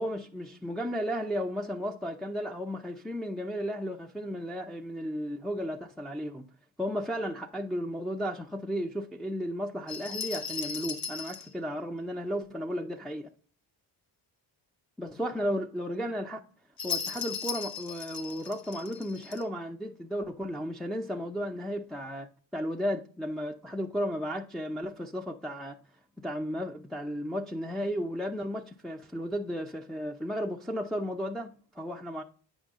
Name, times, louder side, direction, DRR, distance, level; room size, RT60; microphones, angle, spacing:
voice 1, 0.0-6.5 6.8-13.3 15.0-16.4 16.8-25.8 26.2-32.2, equal, ahead, 0.6 m, -34 dB
sound 1, 9.9-11.5 16.8-19.4, left 6 dB, 50° left, 1.4 m, -37 dB
9.0 x 5.0 x 3.6 m
cardioid pair, 85°, 44 cm